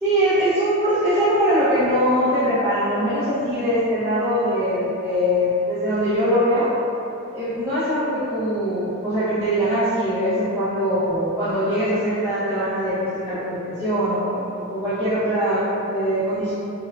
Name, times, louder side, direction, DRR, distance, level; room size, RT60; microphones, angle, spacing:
voice 1, 0.0-6.7 7.3-16.5, equal, 10° right, -16 dB, 0.5 m, -22 dB
3.4 x 2.1 x 2.2 m, 2.8 s
head